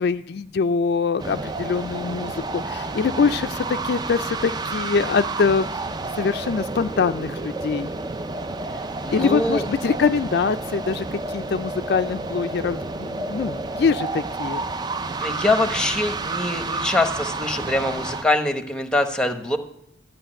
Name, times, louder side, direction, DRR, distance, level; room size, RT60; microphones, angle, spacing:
voice 1, 0.0-5.7 6.2-7.9 9.1-14.6, left 5 dB, 55° left, 10 dB, 0.3 m, -23 dB
sound 1, 1.2-18.2, right 3 dB, 20° right, 0.4 m, -30 dB
voice 2, 9.0-9.7 15.2-19.6, left 2 dB, 5° left, 7 dB, 0.9 m, -23 dB
13.0 x 5.8 x 8.9 m, 0.81 s
head